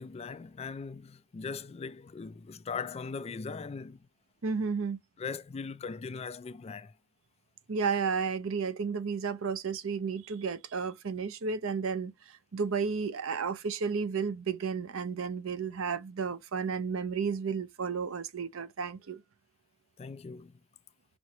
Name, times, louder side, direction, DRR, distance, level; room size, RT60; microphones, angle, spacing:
voice 1, 0.0-4.1 5.2-6.9 20.0-20.6, left 5 dB, 30° left, 0.3 m, -40 dB
voice 2, 4.4-5.0 7.7-19.2, right 5 dB, 70° right, 0.6 m, -32 dB
6.1 x 2.9 x 2.8 m
head